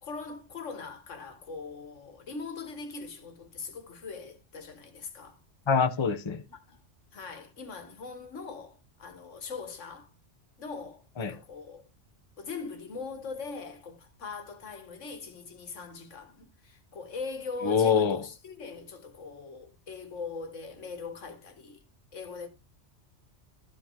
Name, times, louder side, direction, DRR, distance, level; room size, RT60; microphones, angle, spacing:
voice 1, 0.0-5.4 6.5-6.8 7.1-10.1 10.6-11.9 12.4-21.8 22.1-22.5, left 4 dB, 85° left, 1.7 m, -41 dB
voice 2, 5.7-6.4 11.2-11.4 17.6-18.2, left 6 dB, 25° left, 0.8 m, -25 dB
13.0 x 5.1 x 3.7 m
omnidirectional pair, 1.2 m